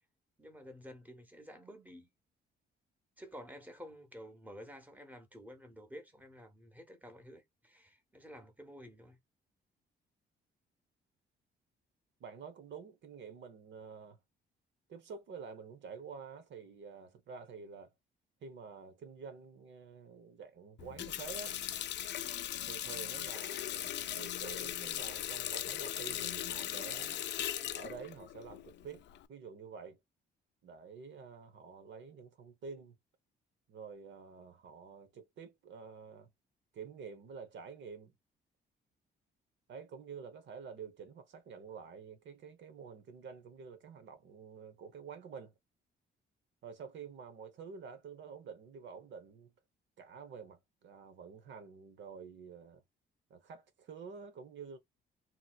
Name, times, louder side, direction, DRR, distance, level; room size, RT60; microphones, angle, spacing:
voice 1, 0.4-2.1 3.2-9.2, equal, 10° right, 1.0 m, -51 dB
voice 2, 12.2-14.2 14.9-17.9 18.4-21.6 22.7-27.3 27.7-30.0 30.6-32.9 33.7-36.3 36.7-38.1 39.7-45.5 46.6-49.5 50.0-52.8 53.3-54.8, right 6 dB, 65° right, 1.0 m, -49 dB
Water tap faucet, 20.8-29.2, left 11 dB, 65° left, 0.4 m, -39 dB
2.9 x 2.8 x 2.3 m
cardioid pair, 90°, 20 cm